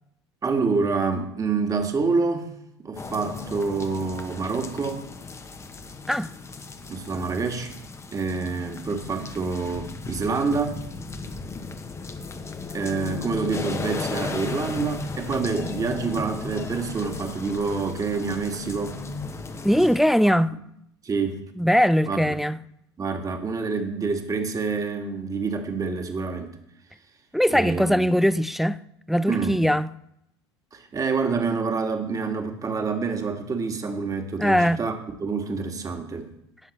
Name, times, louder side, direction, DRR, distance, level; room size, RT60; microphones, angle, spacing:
voice 1, 0.4-2.5 2.8-5.1 6.9-7.7 8.1-10.8 12.7-19.0 20.3-20.4 21.0-21.4 22.1-22.2 23.0-26.6 27.5-28.2 29.3-29.6 30.7-34.9 35.2-36.3, right 4 dB, 25° right, 1.9 m, -27 dB
sound 1, 3.0-20.0, left 4 dB, 20° left, 1.1 m, -35 dB
voice 2, 19.6-20.5 21.6-22.6 27.3-28.8 29.1-29.9 34.4-34.8, equal, ahead, 0.3 m, -20 dB
18.5 x 7.1 x 3.3 m
figure-of-eight pair, 70°, 14 cm